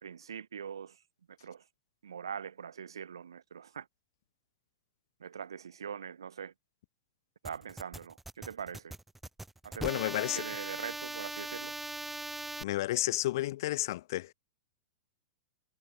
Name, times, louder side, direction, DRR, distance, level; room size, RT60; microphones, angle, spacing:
voice 1, 0.0-1.0 1.3-1.7 2.0-3.9 5.2-6.5 7.4-9.0 9.6-10.0 10.3-11.7, right 7 dB, 80° right, 1.7 m, -42 dB
sound 1, 7.4-12.6, right 2 dB, 5° right, 0.8 m, -40 dB
voice 2, 9.8-10.4 12.6-14.3, left 16 dB, 60° left, 0.4 m, -31 dB
hypercardioid pair, 105°, 2 cm